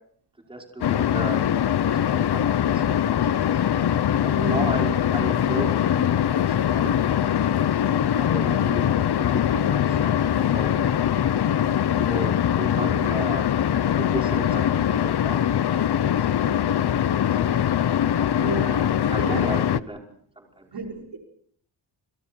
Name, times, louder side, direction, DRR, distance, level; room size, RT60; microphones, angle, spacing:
voice 1, 0.5-3.1 3.4-3.6 4.2-7.3 7.8-8.9 9.2-11.0 12.0-15.7 16.1-16.5 17.2-17.5 19.0-20.0 20.4-20.7, right 1 dB, 15° right, 0 dB, 5.4 m, -36 dB
sound 1, 0.8-19.8, left 10 dB, 65° left, 0.9 m, -22 dB
voice 2, 4.2-4.7 12.8-13.0 18.3-19.6 20.7-21.2, right 4 dB, 65° right, 1 dB, 5.6 m, -33 dB
30.0 x 29.0 x 4.6 m, 0.62 s
wide cardioid pair, 150°, 42 cm